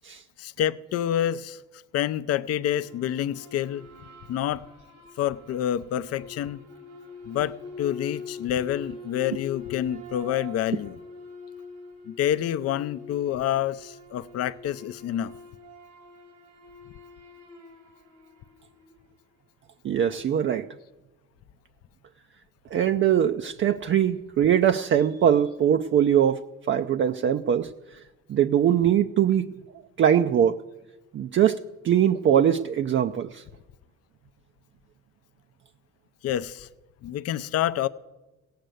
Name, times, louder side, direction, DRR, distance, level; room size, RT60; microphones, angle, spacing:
voice 1, 0.4-1.6 1.9-3.9 4.3-4.6 5.2-6.6 7.3-11.0 12.1-15.3 36.2-36.7 37.0-37.9, left 11 dB, 55° left, 0.5 m, -28 dB
sound 1, 2.5-19.1, left 4 dB, 85° right, 2.4 m, -44 dB
voice 2, 19.8-20.7 22.7-26.4 26.7-28.0 28.3-29.5 30.0-30.6 31.1-33.4, right 9 dB, 45° right, 0.5 m, -22 dB
16.5 x 6.7 x 7.7 m
cardioid pair, 90°, 29 cm